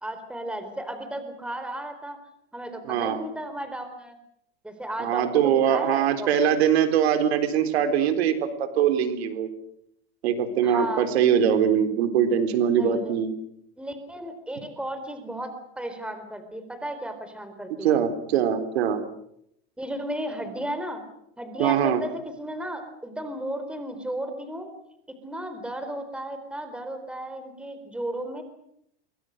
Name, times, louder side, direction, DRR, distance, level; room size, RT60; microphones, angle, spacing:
voice 1, 0.0-2.2 2.5-4.2 4.6-6.3 10.6-11.1 12.8-13.1 13.8-18.0 19.8-21.0 21.4-24.7 25.2-28.4, right 1 dB, 5° right, 8 dB, 4.1 m, -34 dB
voice 2, 2.8-3.2 5.0-9.5 10.2-13.3 17.8-19.0 21.6-22.0, right 8 dB, 75° right, 8 dB, 3.9 m, -22 dB
26.5 x 24.0 x 6.6 m, 0.73 s
supercardioid pair, 140°, 32 cm